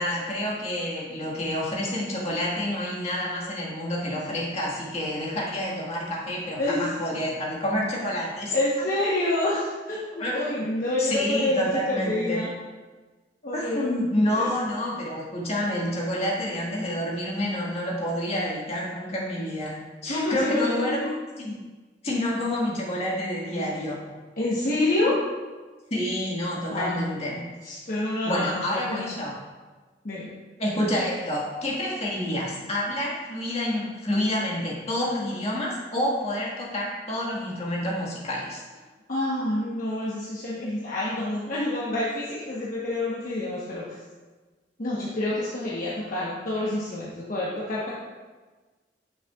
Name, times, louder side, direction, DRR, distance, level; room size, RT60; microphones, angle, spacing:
voice 1, 0.0-8.9 10.2-10.4 11.0-12.4 13.5-21.0 21.4-21.6 22.0-24.0 25.9-27.4 28.0-29.4 30.6-38.6, left 1 dB, 35° left, -4 dB, 1.8 m, -28 dB
voice 2, 8.5-12.5 13.4-13.9 14.3-14.5 20.1-21.1 24.4-25.1 26.7-27.0 27.6-29.1 30.0-30.3 39.1-43.8 44.8-47.9, left 1 dB, 50° left, -7 dB, 1.1 m, -27 dB
9.1 x 6.4 x 2.4 m, 1.3 s
head